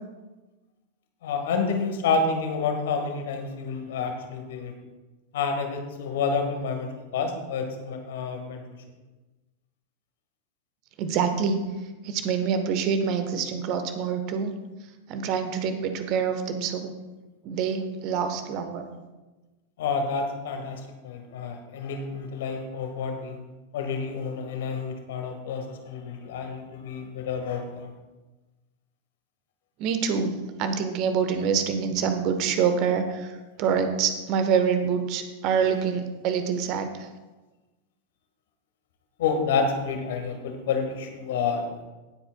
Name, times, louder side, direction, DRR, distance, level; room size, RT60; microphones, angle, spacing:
voice 1, 1.2-4.7 5.3-8.6 19.8-23.4 23.7-27.9 39.2-41.8, left 5 dB, 55° left, 4 dB, 1.6 m, -29 dB
voice 2, 11.0-11.6 12.0-14.5 15.1-16.9 17.4-18.8 29.8-30.3 30.6-33.3 33.6-37.1, right 6 dB, 40° right, 8 dB, 1.1 m, -26 dB
18.5 x 7.9 x 2.3 m, 1.2 s
figure-of-eight pair, 90°, 0 cm